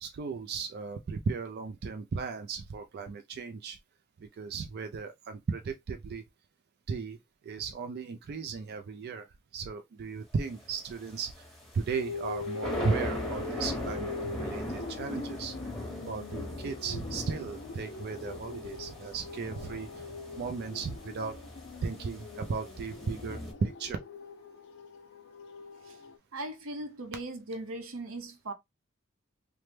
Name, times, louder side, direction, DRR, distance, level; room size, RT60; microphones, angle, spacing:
voice 1, 0.0-3.8 4.2-6.2 6.9-7.2 7.4-9.3 9.5-11.5 11.7-15.5 16.0-19.9 20.4-21.4 21.8-24.0, right 5 dB, 50° right, 0.3 m, -36 dB
sound 1, 10.4-23.5, left 1 dB, ahead, 0.9 m, -40 dB
sound 2, 11.9-26.2, left 4 dB, 65° left, 0.4 m, -43 dB
voice 2, 26.3-28.5, right 2 dB, 90° right, 0.7 m, -39 dB
3.1 x 2.0 x 3.1 m
head